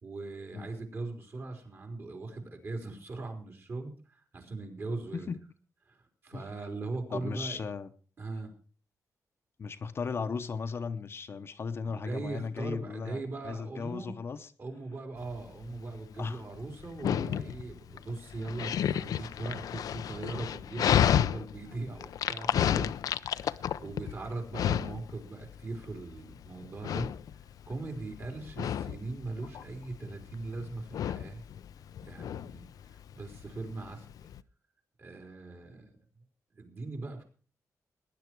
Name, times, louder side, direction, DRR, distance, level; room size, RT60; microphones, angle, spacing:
voice 1, 0.0-5.3 5.9-7.6 8.2-8.5 11.8-14.1 14.6-27.1 27.7-31.4 32.0-34.1 35.0-35.9 36.5-37.2, right 3 dB, 40° right, 4.0 m, -40 dB
voice 2, 7.1-7.9 9.6-14.5 16.2-16.4 19.1-19.2, left 5 dB, 40° left, 0.9 m, -36 dB
Dog, 15.2-34.4, left 9 dB, 80° left, 0.6 m, -32 dB
19.0 x 10.5 x 4.6 m
wide cardioid pair, 160°, 6 cm